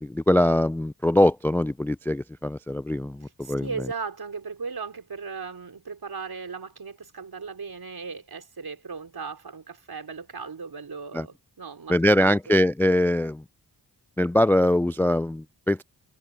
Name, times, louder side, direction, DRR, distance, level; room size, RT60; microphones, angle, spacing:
voice 1, 0.0-3.9 11.1-11.3 11.9-13.4 14.2-15.8, left 1 dB, 5° left, 0.3 m, -22 dB
voice 2, 3.2-12.6, right 5 dB, 55° right, 4.5 m, -37 dB
cardioid pair, 45°, 43 cm